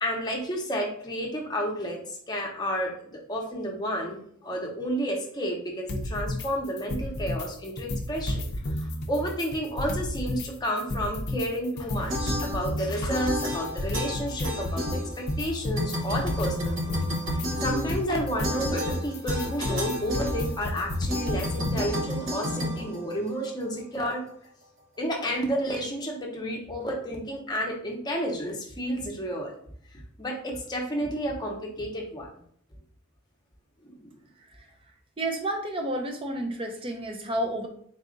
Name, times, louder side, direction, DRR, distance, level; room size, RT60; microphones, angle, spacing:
voice 1, 0.0-17.0 17.6-24.2 25.0-29.6 30.2-32.3 33.8-34.1, equal, 20° left, -1 dB, 0.8 m, -31 dB
sound 1, 5.9-6.5 6.8-7.5 7.8-10.5 10.8-21.9, left 1 dB, 55° left, 0.5 m, -31 dB
sound 2, 12.1-12.8 13.1-15.5 15.8-23.6, left 1 dB, 70° right, 0.9 m, -32 dB
voice 2, 35.2-37.7, right 1 dB, 25° right, 3 dB, 0.6 m, -30 dB
4.1 x 2.4 x 3.8 m, 0.62 s
head